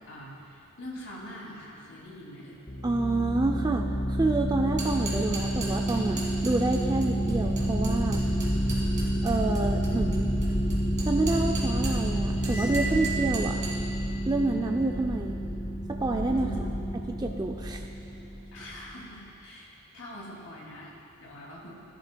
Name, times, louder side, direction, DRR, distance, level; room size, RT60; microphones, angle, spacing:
voice 1, 0.1-2.6 15.3-15.7 16.4-16.9 18.5-21.7, left 1 dB, 70° left, -4 dB, 2.6 m, -44 dB
sound 1, 2.7-18.9, equal, 20° left, 0.6 m, -29 dB
voice 2, 2.8-8.2 9.2-10.3 11.0-13.6 14.3-15.4 16.0-16.5 17.2-17.8, right 2 dB, 20° right, 2 dB, 0.3 m, -28 dB
sound 2, 4.6-12.1 12.4-13.7, right 3 dB, 35° right, 2.4 m, -38 dB
Cymbal, 12.4-13.9, right 5 dB, 35° left, 1.8 m, -34 dB
16.5 x 11.5 x 2.3 m, 2.9 s
head